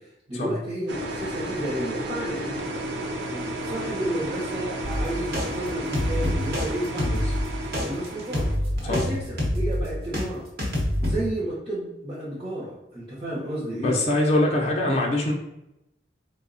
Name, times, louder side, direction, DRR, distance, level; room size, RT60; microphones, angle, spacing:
voice 1, 0.0-2.6 3.2-7.1 7.8-10.5 11.0-13.9, right 1 dB, 30° right, -9 dB, 0.7 m, -32 dB
sound 1, 0.9-8.6, right 1 dB, 80° right, 0.5 m, -32 dB
sound 2, 4.8-10.2 10.6-11.1, left 1 dB, 55° right, 0.9 m, -26 dB
voice 2, 13.7-15.3, left 1 dB, 35° left, -1 dB, 0.5 m, -23 dB
3.3 x 2.0 x 3.7 m, 0.88 s
head